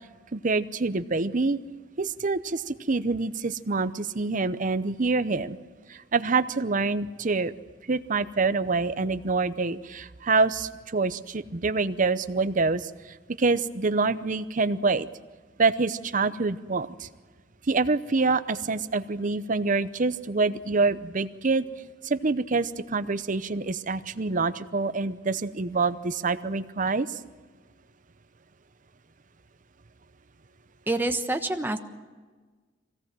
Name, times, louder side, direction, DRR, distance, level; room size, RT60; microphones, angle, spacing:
voice 1, 0.3-1.6 2.0-5.6 5.9-7.5 7.9-15.1 15.6-17.1 17.7-21.7 22.0-27.2, right 3 dB, 45° right, 13 dB, 0.7 m, -26 dB
voice 2, 30.9-31.8, right 2 dB, 10° right, 6 dB, 1.2 m, -27 dB
23.5 x 17.5 x 7.6 m, 1.4 s
head